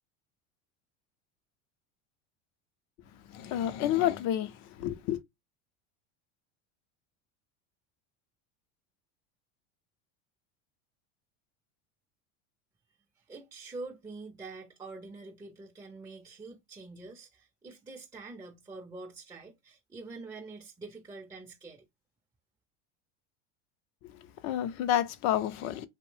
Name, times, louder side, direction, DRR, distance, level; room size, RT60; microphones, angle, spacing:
voice 1, 3.3-5.2 24.0-25.9, left 11 dB, 50° left, 0.5 m, -30 dB
voice 2, 13.2-21.9, right 3 dB, 10° right, 0.5 m, -45 dB
2.7 x 2.0 x 3.2 m
supercardioid pair, 120°, 36 cm